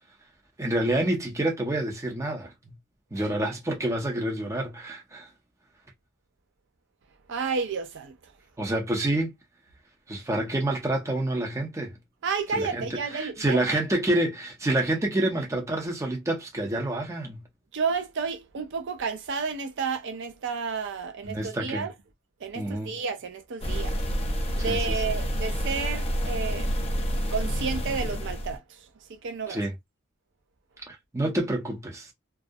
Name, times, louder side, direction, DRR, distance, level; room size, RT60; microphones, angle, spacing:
voice 1, 0.6-2.5 3.1-5.3 8.6-9.3 10.1-11.9 12.6-12.9 13.1-17.4 21.2-21.9 22.5-22.9 24.7-24.8 29.5-29.7 30.9-32.1, right 1 dB, 15° right, 0.6 m, -28 dB
voice 2, 7.3-8.2 12.2-13.8 17.7-21.9 22.4-24.0 24.5-26.7 27.3-29.6, right 5 dB, 60° right, 0.5 m, -31 dB
sound 1, 23.6-28.6, equal, 30° left, 0.5 m, -28 dB
2.4 x 2.0 x 2.6 m
head